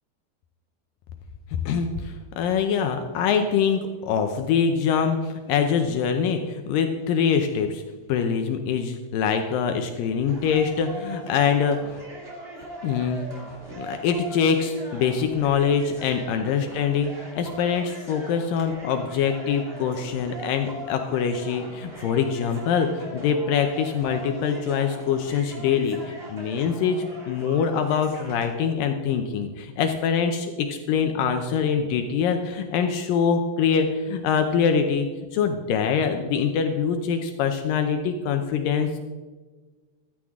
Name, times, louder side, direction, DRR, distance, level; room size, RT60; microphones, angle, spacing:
voice 1, 1.5-7.8 8.1-11.8 12.8-13.3 13.8-39.0, left 6 dB, 90° left, 6 dB, 1.9 m, -24 dB
sound 1, 10.3-28.5, right 1 dB, 30° right, 1.1 m, -40 dB
15.0 x 13.0 x 3.6 m, 1.3 s
omnidirectional pair, 5.0 m